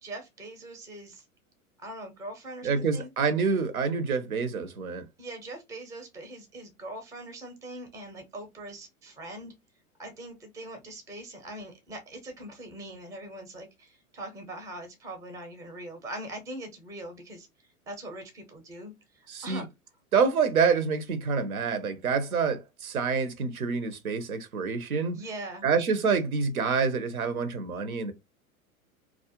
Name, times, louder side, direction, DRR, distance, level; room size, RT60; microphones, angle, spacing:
voice 1, 0.0-1.2 1.8-3.1 5.2-9.5 10.0-17.5 17.9-19.6 25.1-25.6, right 1 dB, 10° right, 0.5 m, -42 dB
voice 2, 2.6-5.0 19.3-19.6 20.1-25.2 25.6-28.1, right 5 dB, 80° right, 0.6 m, -27 dB
2.3 x 2.0 x 2.8 m
figure-of-eight pair, 90°, 42 cm